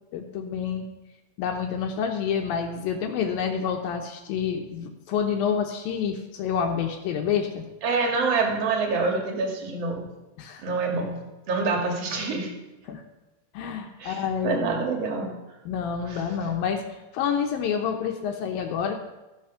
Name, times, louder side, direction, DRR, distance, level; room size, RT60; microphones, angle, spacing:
voice 1, 0.1-0.9 1.4-7.6 10.4-10.6 12.9-13.0 13.5-14.8 15.7-16.8 17.1-19.0, left 7 dB, 75° left, 4 dB, 2.4 m, -28 dB
voice 2, 7.8-10.0 10.6-11.2 11.5-12.5 14.0-15.3 16.1-16.2, right 4 dB, 50° right, 1 dB, 2.3 m, -26 dB
15.0 x 6.2 x 5.6 m, 1.1 s
omnidirectional pair, 4.6 m